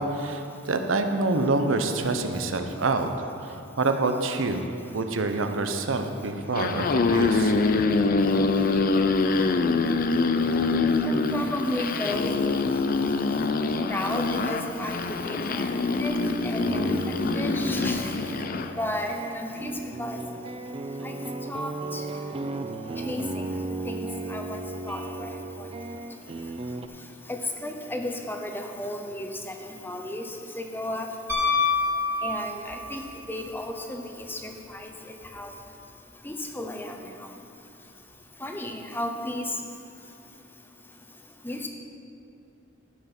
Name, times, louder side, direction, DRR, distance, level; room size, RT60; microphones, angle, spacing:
voice 1, 0.0-3.1 3.4-4.7 4.9-7.5, right 3 dB, 80° right, 6 dB, 0.8 m, -26 dB
sound 1, 6.4-18.7, left 3 dB, 45° left, 0.5 m, -25 dB
voice 2, 11.0-12.3 13.9-18.1 18.8-19.7 20.0-20.2 21.0-21.2 21.5-22.0 23.1-23.5 23.9-25.3 27.3-29.5 29.8-30.2 30.6-31.1 32.2-33.0 33.3-34.9 35.3-35.5 36.2-37.0 38.4-39.5 41.4-41.7, left 1 dB, 10° left, 3 dB, 0.8 m, -33 dB
sound 2, 16.4-26.9, right 2 dB, 30° right, 0.4 m, -35 dB
Piano, 31.3-32.9 35.2-35.3, left 4 dB, 10° right, 1.9 m, -25 dB
13.5 x 5.7 x 6.0 m, 2.6 s
head